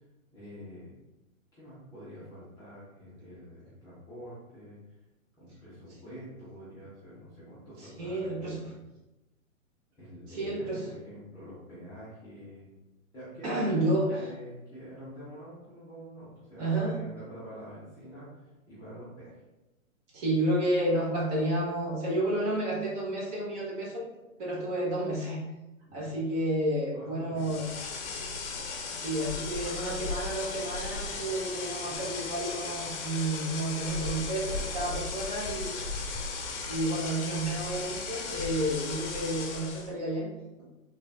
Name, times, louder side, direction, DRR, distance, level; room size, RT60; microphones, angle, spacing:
voice 1, 0.3-1.0 1.5-4.8 5.4-8.8 10.0-12.7 13.1-19.4 25.9-26.1 26.9-27.6 31.1-31.3, equal, 10° left, -12 dB, 0.5 m, -46 dB
voice 2, 7.8-8.6 10.3-10.9 13.4-14.3 16.6-17.0 20.1-24.0 24.4-25.4 25.9-27.6 28.9-35.8 36.6-40.3 40.6-40.7, right 1 dB, 30° right, -4 dB, 0.7 m, -30 dB
sound 1, 27.4-39.9, left 4 dB, 55° left, 0.6 m, -36 dB
3.3 x 2.4 x 2.3 m, 1.0 s
hypercardioid pair, 135°, 42 cm